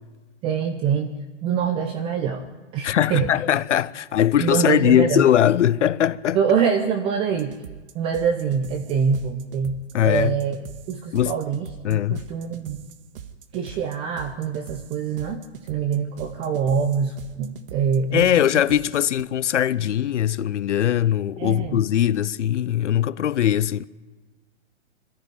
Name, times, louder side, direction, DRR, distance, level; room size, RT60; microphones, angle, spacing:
voice 1, 0.4-1.1 1.4-2.5 2.7-3.3 4.4-5.3 6.3-7.5 7.9-10.6 10.9-12.9 13.5-15.4 15.7-18.5 21.4-21.8, right 7 dB, 15° right, 0.7 m, -24 dB
voice 2, 2.8-6.4 9.9-10.4 11.1-11.3 11.8-12.2 18.1-23.8, left 10 dB, 70° left, 0.7 m, -20 dB
sound 1, 7.4-19.2, right 8 dB, 45° right, 1.7 m, -42 dB
22.0 x 14.5 x 9.2 m
hypercardioid pair, 145°, 38 cm